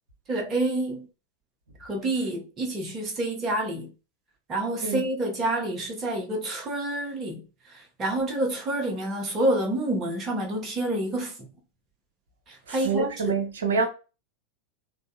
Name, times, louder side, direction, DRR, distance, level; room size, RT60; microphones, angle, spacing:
voice 1, 0.3-1.0 1.8-3.9 4.5-7.4 8.0-11.3 12.7-13.4, right 1 dB, 25° right, 0.9 m, -28 dB
voice 2, 12.7-13.9, right 4 dB, 65° right, 0.7 m, -26 dB
3.6 x 2.3 x 2.7 m
figure-of-eight pair, 90°, 0 cm